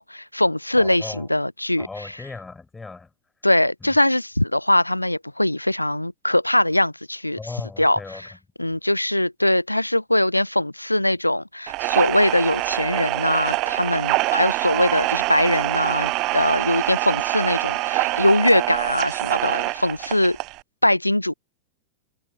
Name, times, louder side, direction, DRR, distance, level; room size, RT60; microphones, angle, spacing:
voice 1, 0.0-2.1 3.4-7.4 7.8-8.3 8.6-20.4 20.8-21.3, left 1 dB, 85° left, 0.5 m, -21 dB
voice 2, 0.8-1.3 1.8-3.1 3.8-4.0 7.4-8.3, left 3 dB, 10° left, 4.4 m, -37 dB
sound 1, 11.7-20.6, right 22 dB, 40° right, 0.5 m, -25 dB
figure-of-eight pair, 90°, 0 cm